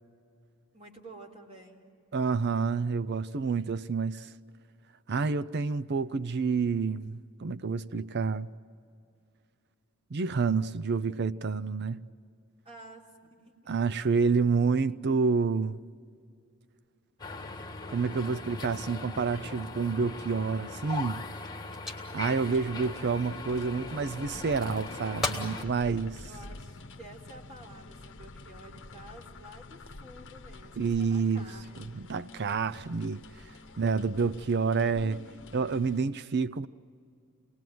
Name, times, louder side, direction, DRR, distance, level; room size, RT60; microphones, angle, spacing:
voice 1, 0.7-1.9 12.7-13.0 13.3-13.6 14.0-14.2 26.3-32.1 33.6-33.8 34.9-35.3, right 1 dB, 30° right, 3.5 m, -51 dB
voice 2, 2.1-4.3 5.1-8.5 10.1-12.0 13.7-15.8 17.9-21.2 22.1-26.2 30.8-31.5 31.8-33.2 33.8-35.2 35.5-36.7, right 5 dB, 50° right, 0.5 m, -28 dB
sound 1, 17.2-25.6, left 3 dB, 20° left, 1.5 m, -40 dB
sound 2, 20.8-23.9 24.3-24.9 25.2-25.6 26.1-26.9 27.6-28.0, left 2 dB, ahead, 3.2 m, -39 dB
sound 3, 22.5-36.0, left 2 dB, 60° left, 0.9 m, -48 dB
27.5 x 20.0 x 9.3 m
head